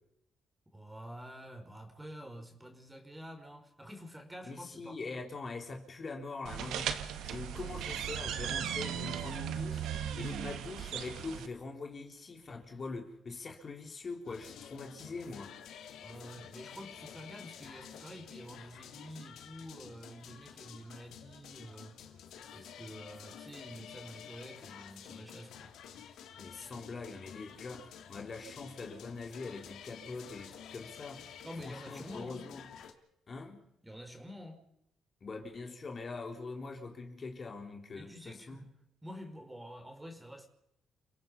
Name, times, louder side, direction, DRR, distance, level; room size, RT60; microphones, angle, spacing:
voice 1, 0.7-5.2 16.0-22.0 22.5-25.7 31.4-32.5 33.8-34.6 38.0-38.7 39.0-40.5, equal, 10° right, 5.2 m, -48 dB
voice 2, 4.4-15.5 26.4-31.3 31.6-32.7 33.3-33.6 35.2-38.7, left 3 dB, 40° left, 3.9 m, -43 dB
Door Opening, 6.5-11.5, right 9 dB, 85° right, 2.1 m, -37 dB
sound 1, 14.2-32.9, left 8 dB, 80° left, 3.0 m, -50 dB
30.0 x 17.5 x 5.6 m
cardioid pair, 90°, 0 cm